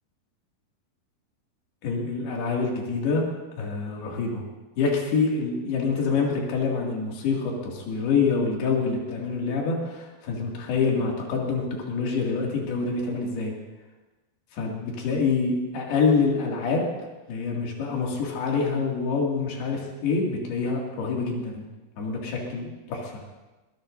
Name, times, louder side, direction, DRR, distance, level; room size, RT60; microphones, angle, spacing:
voice 1, 1.8-3.2 3.6-4.4 4.8-13.5 14.5-16.9 17.3-21.6 22.0-23.2, left 4 dB, 75° left, -2 dB, 4.3 m, -26 dB
23.0 x 19.0 x 2.7 m, 1.2 s
omnidirectional pair, 4.7 m